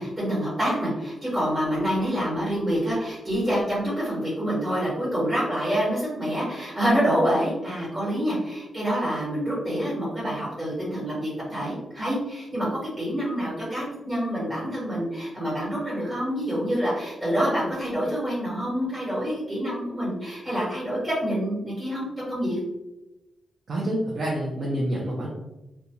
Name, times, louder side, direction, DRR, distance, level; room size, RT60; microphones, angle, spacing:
voice 1, 0.0-22.6, equal, 20° right, -9 dB, 1.3 m, -27 dB
voice 2, 23.7-25.3, right 1 dB, 45° right, -4 dB, 0.6 m, -27 dB
2.6 x 2.2 x 2.9 m, 0.99 s
wide cardioid pair, 150°, 0 cm